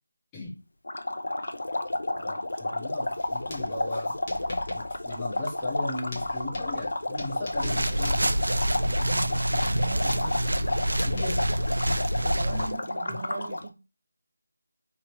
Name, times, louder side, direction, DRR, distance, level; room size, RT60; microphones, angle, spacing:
sound 1, 0.9-13.7, left 2 dB, 75° left, 0.5 m, -31 dB
voice 1, 2.1-4.2 4.7-8.2 11.0-11.5 12.5-12.8 13.1-13.2, left 2 dB, 10° left, 0.7 m, -37 dB
Writing, 3.1-12.4, left 1 dB, 30° left, 1.0 m, -43 dB
voice 2, 7.3-7.8 8.8-10.4 12.2-13.8, right 3 dB, 30° right, 0.6 m, -39 dB
sound 2, 7.5-12.7, right 1 dB, 75° right, 0.4 m, -27 dB
4.0 x 3.1 x 2.9 m
figure-of-eight pair, 170°, 0 cm